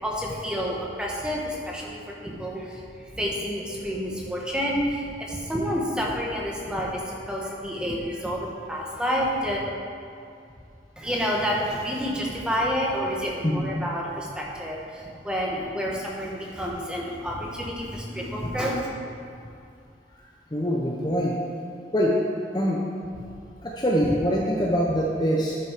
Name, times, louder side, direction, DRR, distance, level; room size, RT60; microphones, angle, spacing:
voice 1, 0.0-9.6 11.0-18.9, equal, 5° right, -3 dB, 1.2 m, -29 dB
voice 2, 13.4-13.8 20.5-21.4 21.9-22.2 22.5-22.8 23.6-25.6, equal, 25° left, -3 dB, 0.7 m, -24 dB
10.0 x 5.9 x 5.1 m, 2.4 s
head